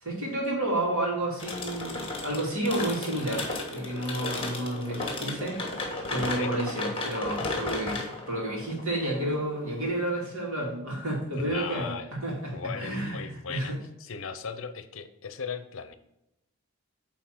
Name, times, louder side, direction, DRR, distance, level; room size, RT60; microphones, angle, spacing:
voice 1, 0.0-5.6 6.1-13.8, right 1 dB, 70° right, -2 dB, 2.6 m, -31 dB
sound 1, 1.4-10.1, left 2 dB, 25° left, 1.3 m, -34 dB
voice 2, 11.3-12.1 12.5-13.7 14.0-15.9, left 5 dB, 65° left, 11 dB, 0.7 m, -37 dB
9.0 x 3.9 x 4.5 m, 0.86 s
head